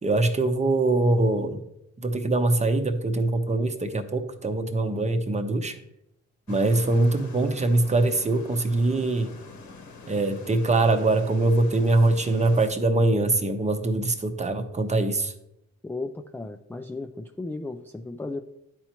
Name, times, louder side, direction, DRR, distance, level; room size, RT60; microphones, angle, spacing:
voice 1, 0.0-1.6 2.0-5.8 6.5-9.3 10.1-15.3, right 2 dB, 25° right, 0.8 m, -23 dB
sound 1, 6.5-12.7, left 3 dB, 75° left, 1.1 m, -45 dB
voice 2, 15.8-18.4, left 2 dB, 5° left, 0.4 m, -35 dB
11.0 x 4.4 x 2.9 m
cardioid pair, 90°, 30 cm